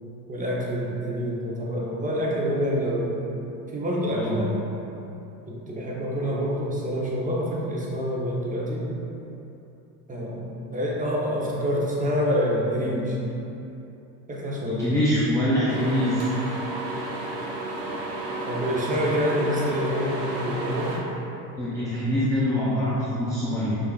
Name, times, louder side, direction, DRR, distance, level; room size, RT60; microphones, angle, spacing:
voice 1, 0.3-3.1 3.7-4.6 5.5-8.9 10.1-13.2 14.3-15.1 15.5-15.7 18.5-21.0, equal, 15° right, -4 dB, 0.8 m, -27 dB
voice 2, 14.6-16.3 21.6-23.8, equal, 10° left, -8 dB, 0.3 m, -24 dB
sound 1, 15.7-21.0, right 2 dB, 65° right, 1.1 m, -32 dB
5.2 x 3.7 x 2.4 m, 2.9 s
supercardioid pair, 100°, 48 cm